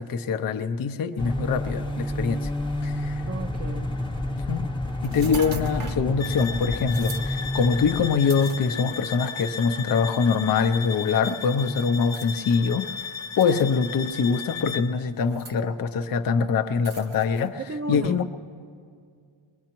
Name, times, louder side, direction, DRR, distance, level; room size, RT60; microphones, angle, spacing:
voice 1, 0.0-2.5 2.8-3.2 4.5-4.7 5.0-13.0 13.4-17.6 17.9-18.3, left 5 dB, 45° left, 8 dB, 0.5 m, -24 dB
sound 1, 1.2-8.1, left 1 dB, 10° left, 0.7 m, -29 dB
voice 2, 3.3-3.9 17.6-18.3, right 3 dB, 30° right, 5 dB, 0.5 m, -34 dB
sound 2, 5.0-6.1 6.9-7.3 8.3-9.1 9.9-10.0 12.1-12.3 13.4-13.9 15.2-15.6 16.8-17.5, right 3 dB, 75° right, 1.2 m, -39 dB
sound 3, 6.2-15.0, left 6 dB, 65° left, 0.9 m, -36 dB
21.5 x 21.5 x 3.0 m, 2.3 s
wide cardioid pair, 120°, 49 cm